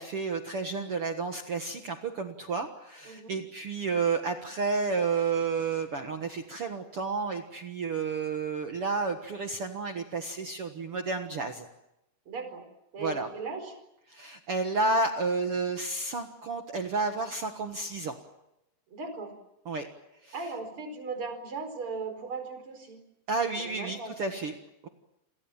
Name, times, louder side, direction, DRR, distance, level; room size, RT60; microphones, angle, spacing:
voice 1, 0.0-11.7 13.0-13.3 14.1-18.2 19.7-19.9 20.2-20.3 23.3-24.5 24.8-24.9, right 4 dB, 55° right, 6 dB, 1.8 m, -31 dB
voice 2, 3.1-3.4 12.3-12.7 12.9-13.7 18.9-19.3 20.3-23.0 23.6-24.5, right 4 dB, 35° right, 7 dB, 5.2 m, -38 dB
29.5 x 23.0 x 7.3 m, 0.89 s
omnidirectional pair, 4.4 m